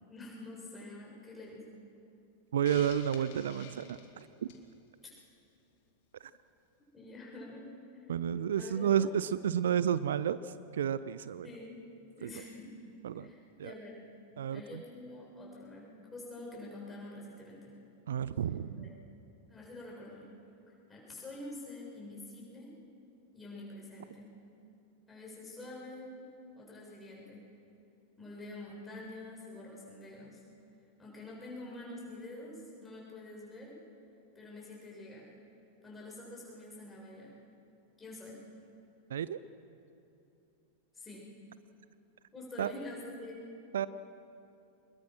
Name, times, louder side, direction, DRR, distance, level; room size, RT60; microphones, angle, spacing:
voice 1, 0.1-1.8 5.0-5.1 6.9-8.1 8.6-9.1 11.4-11.8 12.2-12.8 13.2-14.1 14.4-17.8 18.7-18.9 19.5-20.3 20.9-22.7 23.3-24.4 25.1-26.3 26.6-27.5 28.2-30.4 31.0-33.8 34.3-35.4 35.8-37.4 38.0-38.5 40.9-41.3 42.3-43.5, left 2 dB, 15° left, -4 dB, 7.4 m, -47 dB
voice 2, 2.5-4.3 8.1-11.5 12.2-12.3 13.0-13.3 13.6-13.7 14.4-14.8 18.1-18.8 39.1-39.4 42.6-42.7 43.7-43.9, right 9 dB, 60° right, 16 dB, 0.5 m, -31 dB
Hiss, 2.7-4.7, left 7 dB, 50° left, 2.5 m, -50 dB
25.5 x 21.0 x 6.2 m, 2.8 s
figure-of-eight pair, 90°, 0 cm